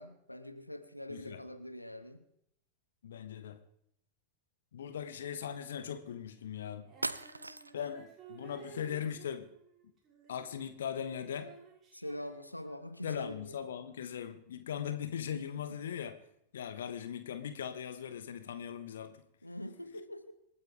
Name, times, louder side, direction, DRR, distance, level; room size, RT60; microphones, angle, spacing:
voice 1, 0.0-2.2 11.9-13.5 15.3-15.4 15.7-15.8 19.4-20.3, left 1 dB, 85° left, 10 dB, 1.2 m, -44 dB
voice 2, 1.1-1.4 3.0-3.6 4.7-6.9 7.7-9.5 10.3-11.5 13.0-16.2 16.5-19.2, left 8 dB, 65° left, 10 dB, 1.2 m, -39 dB
sound 1, 6.4-6.5 7.0-7.9, right 2 dB, 85° right, 0.5 m, -39 dB
Female singing, 6.8-13.1, right 6 dB, 25° right, 6.2 m, -56 dB
27.0 x 9.6 x 3.5 m, 0.74 s
figure-of-eight pair, 90°, 0 cm